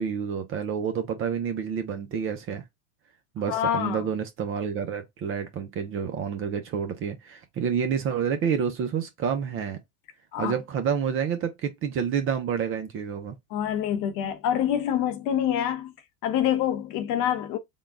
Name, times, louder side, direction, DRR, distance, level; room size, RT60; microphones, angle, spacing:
voice 1, 0.0-2.6 3.3-9.8 10.4-13.4, right 7 dB, 30° right, 0.6 m, -29 dB
voice 2, 3.5-4.1 10.3-10.5 13.5-15.9 16.2-17.6, left 10 dB, 40° left, 0.9 m, -26 dB
3.7 x 2.3 x 3.6 m
hypercardioid pair, 115°, 46 cm